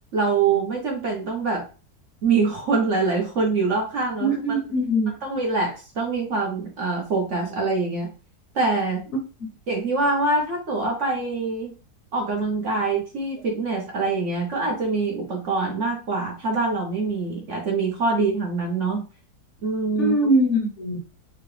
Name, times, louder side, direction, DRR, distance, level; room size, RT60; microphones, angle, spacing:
voice 1, 0.1-1.7 2.2-4.6 5.2-8.1 8.5-9.0 9.7-11.7 12.1-19.0 19.6-20.1, right 3 dB, 55° right, 1.1 m, -24 dB
voice 2, 4.2-5.1 19.9-21.0, right 1 dB, 50° left, 1.1 m, -22 dB
4.8 x 2.3 x 3.2 m
omnidirectional pair, 1.8 m